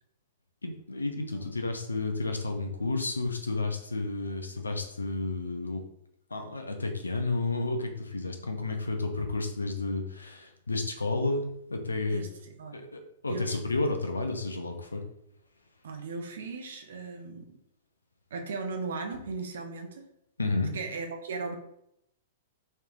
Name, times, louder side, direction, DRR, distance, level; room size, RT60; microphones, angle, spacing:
voice 1, 0.6-5.8 6.3-11.4 11.7-12.2 12.7-15.0 20.4-20.7, left 3 dB, 80° left, 4 dB, 0.5 m, -31 dB
voice 2, 12.0-12.8 13.3-13.6 15.8-17.6 18.3-20.1 20.7-21.6, right 4 dB, 60° right, 5 dB, 0.6 m, -37 dB
3.2 x 3.0 x 2.4 m, 0.76 s
figure-of-eight pair, 105°, 0 cm